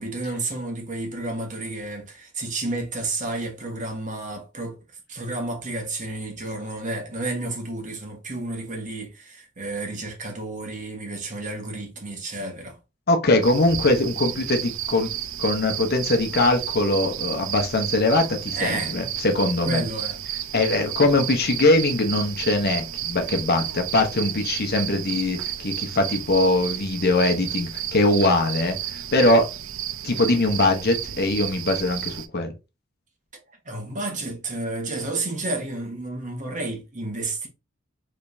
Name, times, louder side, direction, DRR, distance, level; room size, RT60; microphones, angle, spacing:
voice 1, 0.0-4.8 5.1-12.8 18.6-18.9 19.6-20.2 33.6-37.5, right 2 dB, 40° right, 1.3 m, -31 dB
voice 2, 13.1-15.1 15.4-19.8 20.5-29.5 30.0-32.5, left 2 dB, 55° left, 0.9 m, -22 dB
sound 1, 13.4-32.3, right 11 dB, 75° right, 0.5 m, -32 dB
5.0 x 3.4 x 2.6 m
head